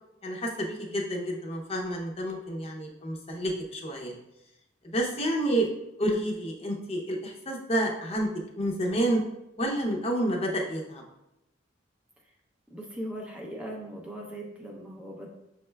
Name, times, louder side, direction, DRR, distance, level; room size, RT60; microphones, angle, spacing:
voice 1, 0.2-4.1 4.8-5.7 6.0-8.3 8.6-9.2 9.6-11.0, right 1 dB, 35° left, 0 dB, 0.6 m, -29 dB
voice 2, 12.7-15.3, equal, 5° right, -2 dB, 0.5 m, -39 dB
6.3 x 3.3 x 2.2 m, 0.88 s
head